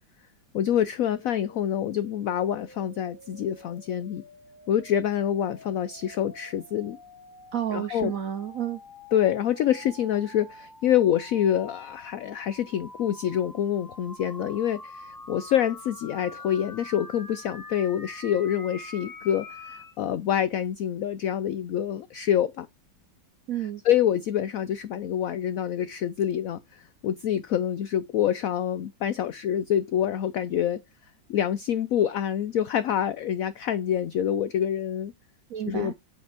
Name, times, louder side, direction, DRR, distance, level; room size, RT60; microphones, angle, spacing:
voice 1, 0.5-4.2 4.7-7.0 7.7-8.1 9.1-22.7 23.8-30.8 31.3-35.1 35.7-35.9, left 10 dB, 70° left, 0.8 m, -26 dB
sound 1, 1.0-19.9, left 2 dB, 15° left, 0.7 m, -46 dB
voice 2, 7.5-8.8 23.5-23.8 35.5-35.9, right 10 dB, 65° right, 0.9 m, -30 dB
8.6 x 5.2 x 3.4 m
omnidirectional pair, 2.1 m